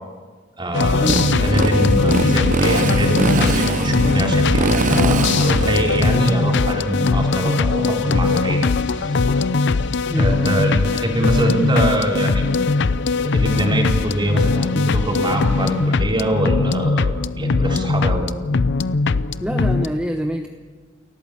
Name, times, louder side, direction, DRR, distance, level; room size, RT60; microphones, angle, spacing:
voice 1, 0.6-1.2 1.4-8.7 8.9-9.2 10.1-12.5 13.2-18.3, right 1 dB, 25° right, 1 dB, 3.8 m, -23 dB
sound 1, 0.7-19.9, left 4 dB, 65° left, 0.6 m, -20 dB
Motorcycle, 1.1-6.2, right 3 dB, 40° right, 0.7 m, -22 dB
voice 2, 19.4-20.5, equal, 5° right, 4 dB, 1.0 m, -25 dB
29.0 x 14.0 x 8.4 m, 1.5 s
head